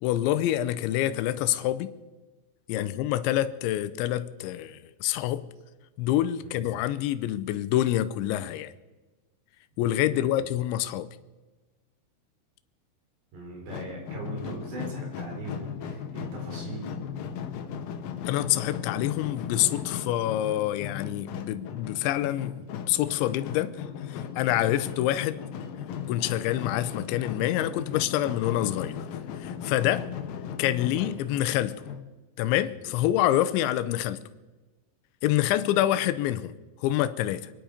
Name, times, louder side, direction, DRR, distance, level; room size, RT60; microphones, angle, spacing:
voice 1, 0.0-1.9 2.7-5.5 6.0-8.7 9.8-11.1 18.3-23.8 24.1-25.4 26.1-29.1 29.4-30.1 30.6-31.9 32.4-34.2 35.2-36.5 36.8-37.5, left 13 dB, 90° left, 3.0 m, -27 dB
voice 2, 13.3-17.0 32.8-33.0, right 2 dB, 70° right, 6.5 m, -40 dB
sound 1, 13.7-32.0, left 8 dB, 75° left, 2.2 m, -37 dB
26.0 x 10.5 x 5.1 m
omnidirectional pair, 5.2 m